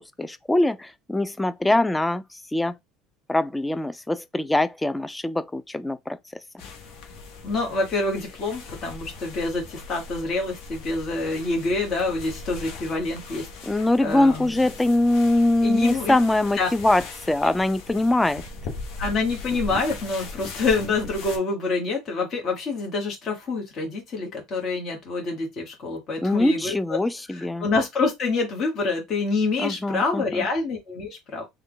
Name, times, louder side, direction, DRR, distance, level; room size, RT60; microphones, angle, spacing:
voice 1, 0.2-2.7 3.3-6.2 13.7-18.4 26.2-27.7 29.6-30.5, left 1 dB, 10° left, 0.4 m, -23 dB
sound 1, 6.6-21.4, left 3 dB, 65° left, 0.9 m, -39 dB
voice 2, 7.4-13.5 14.0-14.6 15.6-16.1 16.6-16.7 19.0-27.0 27.3-31.5, left 3 dB, 45° left, 1.3 m, -27 dB
3.1 x 2.3 x 3.9 m
hypercardioid pair, 70°, 0 cm